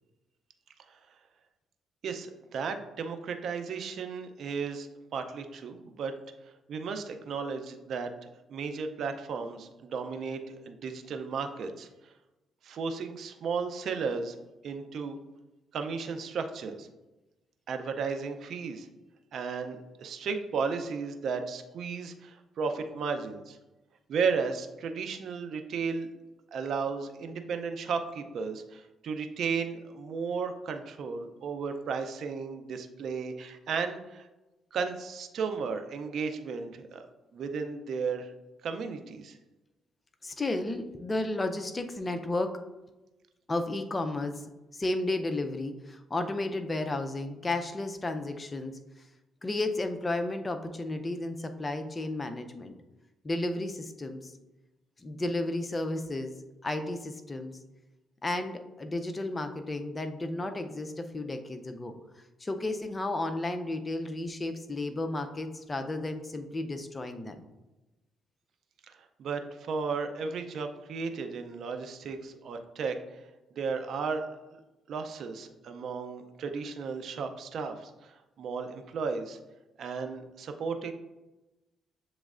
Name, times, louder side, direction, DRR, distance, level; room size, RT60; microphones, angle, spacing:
voice 1, 2.0-6.1 6.7-8.1 8.5-11.9 12.6-14.4 14.6-15.2 15.7-16.9 17.7-18.9 19.3-23.6 24.1-26.1 26.5-34.3 34.7-37.0 37.3-38.3 38.6-39.3 69.2-73.0 73.6-74.6 74.9-79.4 79.8-80.9, right 5 dB, 65° right, 7 dB, 0.4 m, -34 dB
voice 2, 40.2-42.6 43.5-44.4 44.7-48.8 49.4-52.7 53.2-54.3 55.0-56.4 56.6-57.6 58.2-62.0 62.4-67.4, left 2 dB, 25° left, 7 dB, 0.5 m, -33 dB
7.2 x 3.1 x 2.4 m, 1.1 s
cardioid pair, 90°, 0 cm